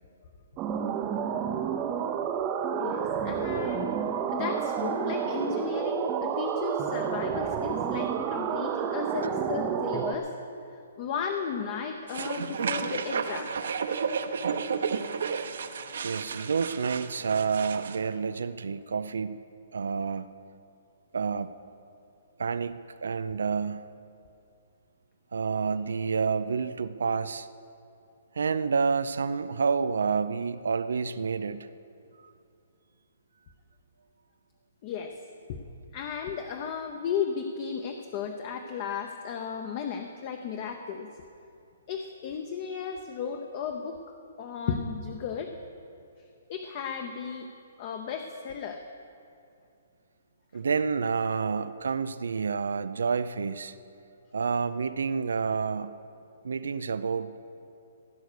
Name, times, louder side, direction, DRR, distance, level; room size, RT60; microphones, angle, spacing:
sound 1, 0.6-10.2, right 7 dB, 15° right, 0.5 m, -30 dB
voice 1, 2.7-4.0 4.3-10.3 10.7-13.5 34.8-35.2 35.5-35.6 35.9-41.1 41.9-44.0 44.4-45.5 46.5-47.5 47.8-48.8, left 6 dB, 25° left, 5 dB, 0.6 m, -34 dB
sound 2, 12.1-18.0, right 6 dB, 60° right, 0.8 m, -32 dB
voice 2, 16.0-19.4 19.7-20.3 21.1-21.5 22.4-23.9 25.3-27.5 28.4-31.7 50.5-53.7 54.3-56.0 56.4-57.4, right 5 dB, 85° right, 14 dB, 0.6 m, -29 dB
16.0 x 9.6 x 6.7 m, 2.6 s
hypercardioid pair, 175°, 0 cm